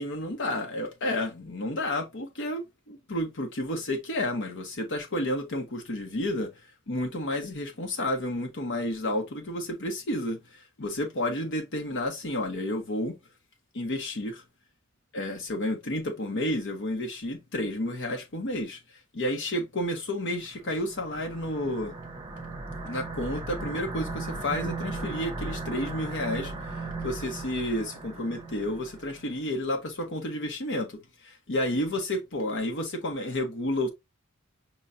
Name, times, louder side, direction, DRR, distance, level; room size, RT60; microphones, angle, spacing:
voice 1, 0.0-2.6 2.9-6.5 6.9-13.2 13.7-14.4 15.1-18.8 19.1-21.9 22.8-26.5 27.0-33.9, left 1 dB, 60° left, 1.0 m, -31 dB
sound 1, 20.6-29.3, right 3 dB, 20° right, 0.7 m, -37 dB
5.5 x 3.0 x 2.5 m
head